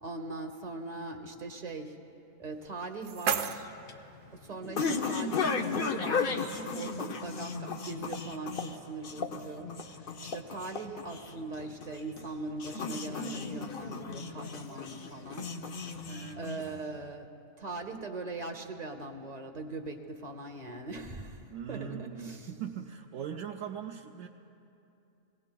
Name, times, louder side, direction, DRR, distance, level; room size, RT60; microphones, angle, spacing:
voice 1, 0.0-1.9 2.4-3.7 4.4-15.9 16.3-17.3 17.6-22.5, right 2 dB, 35° right, 4 dB, 0.7 m, -41 dB
sound 1, 2.5-4.5, right 7 dB, 90° right, 1.2 m, -35 dB
sound 2, 3.4-17.0, left 4 dB, 55° left, 0.6 m, -35 dB
voice 2, 16.0-17.0 21.5-24.3, right 8 dB, 65° right, 1 dB, 0.9 m, -41 dB
24.0 x 18.0 x 2.3 m, 2.7 s
omnidirectional pair, 1.6 m